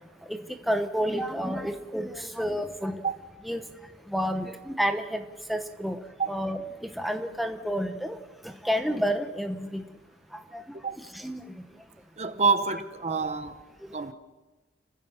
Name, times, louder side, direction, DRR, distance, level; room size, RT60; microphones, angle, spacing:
voice 1, 0.7-3.0 3.4-3.6 4.1-5.2 5.5-6.0 6.3-8.2 8.4-9.8 10.3-10.8 11.1-11.7, equal, ahead, 1.0 m, -30 dB
voice 2, 12.2-13.6 13.9-14.1, right 4 dB, 35° right, 1.1 m, -27 dB
29.5 x 15.5 x 7.2 m
head